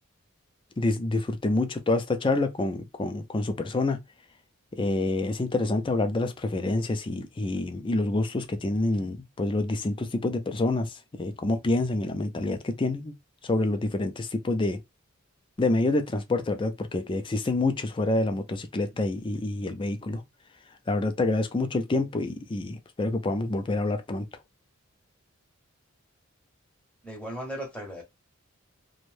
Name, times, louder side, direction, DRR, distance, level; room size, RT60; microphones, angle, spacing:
voice 1, 0.8-4.0 4.8-13.1 13.4-14.8 15.6-20.2 20.9-24.3, left 2 dB, 25° left, 0.4 m, -27 dB
voice 2, 27.0-28.0, equal, 5° left, 0.8 m, -36 dB
2.6 x 2.1 x 3.2 m
head